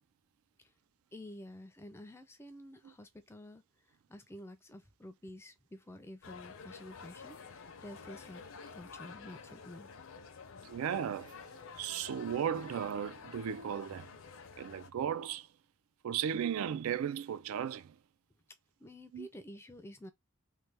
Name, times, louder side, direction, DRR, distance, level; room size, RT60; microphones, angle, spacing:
voice 1, 1.1-3.6 4.1-8.4 8.7-9.9 18.8-20.1, left 1 dB, 10° left, 0.4 m, -50 dB
sound 1, 6.2-14.9, left 5 dB, 65° left, 0.5 m, -50 dB
voice 2, 10.6-11.4 11.8-14.1 14.6-15.5 16.0-18.0 19.1-19.3, right 8 dB, 75° right, 0.3 m, -35 dB
3.2 x 2.1 x 3.2 m
head